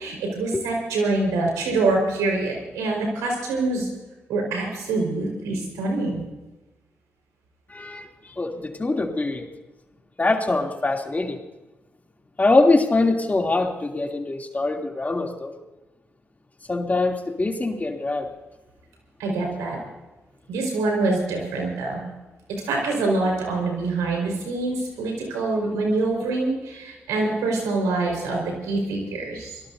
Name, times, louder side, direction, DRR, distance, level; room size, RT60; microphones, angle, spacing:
voice 1, 0.0-3.9 4.3-6.2 19.2-19.8 20.5-22.1 22.6-29.6, right 3 dB, 90° right, 0 dB, 4.8 m, -25 dB
voice 2, 7.7-8.1 8.4-9.5 10.2-11.4 12.4-15.5 16.7-18.3, left 2 dB, 30° left, 2 dB, 2.8 m, -23 dB
26.0 x 18.0 x 2.7 m, 1.1 s
supercardioid pair, 40°, 5 cm